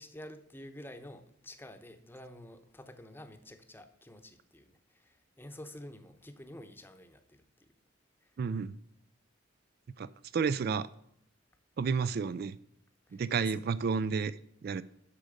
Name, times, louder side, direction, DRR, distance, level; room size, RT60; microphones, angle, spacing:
voice 1, 0.0-7.7 8.2-8.3 13.1-13.5 14.7-14.8, left 1 dB, 10° left, 0.8 m, -50 dB
voice 2, 8.4-8.7 10.0-10.9 11.8-12.6 13.1-14.4 14.6-14.8, right 5 dB, 50° right, 0.3 m, -31 dB
8.5 x 6.4 x 6.4 m
head